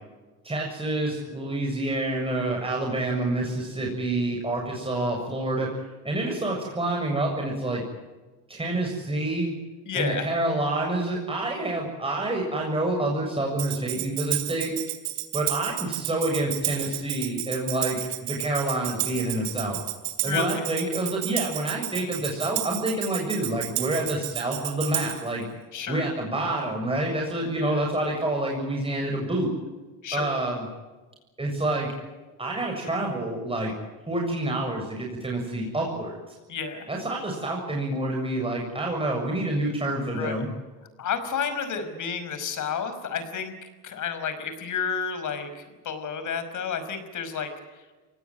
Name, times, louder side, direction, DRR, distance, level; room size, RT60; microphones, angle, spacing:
voice 1, 0.4-5.7 6.0-7.8 8.5-9.5 9.9-14.7 15.3-19.8 20.2-25.5 25.9-29.5 30.1-30.6 31.4-31.9 32.4-33.7 34.1-36.4 36.9-40.5, right 2 dB, 15° right, 0 dB, 7.1 m, -28 dB
voice 2, 9.9-10.3 20.2-20.7 25.7-26.1 27.5-27.9 30.0-30.3 36.5-36.9 40.1-40.4 41.0-47.9, left 6 dB, 50° left, 10 dB, 5.5 m, -31 dB
Tambourine, 13.6-25.3, right 17 dB, 80° right, 3.1 m, -32 dB
24.0 x 18.5 x 9.4 m, 1.2 s
supercardioid pair, 90°, 40 cm